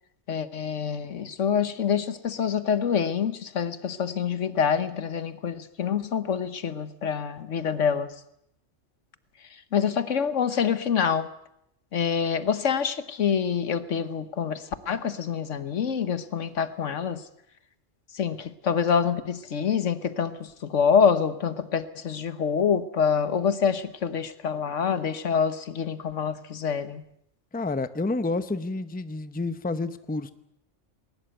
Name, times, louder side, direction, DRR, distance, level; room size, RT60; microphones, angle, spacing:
voice 1, 0.3-8.1 9.7-11.3 11.9-17.2 18.1-20.3 20.7-27.0, left 7 dB, 80° left, 1.5 m, -26 dB
voice 2, 27.5-30.3, left 3 dB, 10° left, 0.6 m, -29 dB
20.0 x 19.0 x 7.9 m
omnidirectional pair, 1.3 m